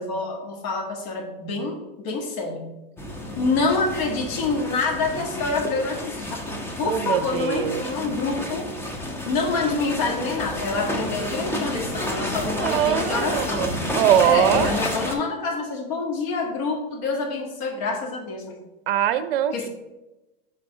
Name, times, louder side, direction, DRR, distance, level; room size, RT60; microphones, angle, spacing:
voice 1, 0.0-2.7 3.4-13.8 14.2-18.6 19.5-19.7, left 3 dB, 50° left, 1 dB, 1.6 m, -27 dB
sound 1, 3.0-15.2, left 1 dB, 10° left, 0.7 m, -30 dB
voice 2, 6.8-7.8 12.6-14.8 18.9-19.7, right 10 dB, 65° right, 12 dB, 0.6 m, -22 dB
5.8 x 3.9 x 5.1 m, 1.0 s
hypercardioid pair, 130°, 30 cm